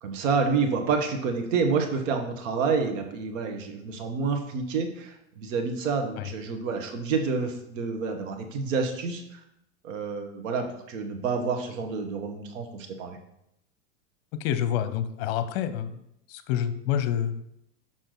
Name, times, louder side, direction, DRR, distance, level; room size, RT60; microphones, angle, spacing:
voice 1, 0.0-9.4 9.8-13.2, right 5 dB, 75° right, 5 dB, 1.4 m, -28 dB
voice 2, 14.3-16.0 16.3-17.5, left 9 dB, 55° left, 11 dB, 0.8 m, -28 dB
6.6 x 5.9 x 4.0 m, 0.79 s
supercardioid pair, 125°, 39 cm